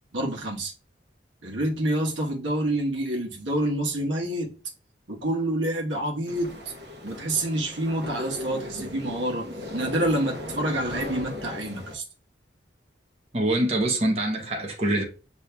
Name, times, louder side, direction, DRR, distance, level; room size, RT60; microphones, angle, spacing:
voice 1, 0.1-0.7 1.4-4.5 5.1-6.7 7.0-12.0, right 1 dB, 85° right, 1.1 m, -27 dB
sound 1, 6.3-12.0, left 1 dB, 60° right, 1.0 m, -37 dB
voice 2, 13.3-15.0, right 1 dB, 35° right, 0.7 m, -24 dB
8.2 x 2.7 x 2.2 m
head